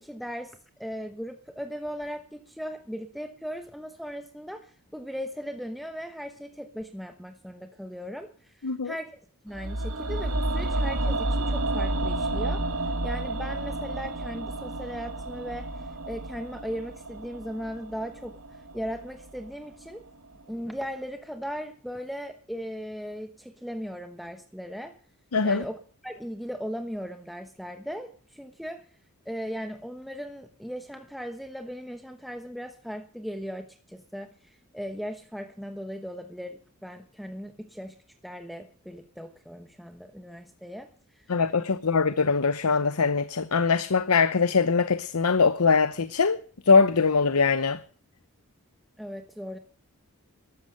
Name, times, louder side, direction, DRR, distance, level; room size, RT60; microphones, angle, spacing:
voice 1, 0.0-9.1 9.4-12.7 13.0-18.4 18.7-20.0 20.5-24.9 25.4-25.8 26.0-28.9 29.2-37.9 38.2-41.4 49.0-49.6, equal, ahead, 1.0 m, -38 dB
sound 1, 9.5-19.7 19.9-20.0, right 2 dB, 85° right, 2.6 m, -31 dB
voice 2, 25.3-25.6 41.3-46.4 46.7-47.8, left 5 dB, 80° left, 0.8 m, -22 dB
13.5 x 13.0 x 6.6 m
head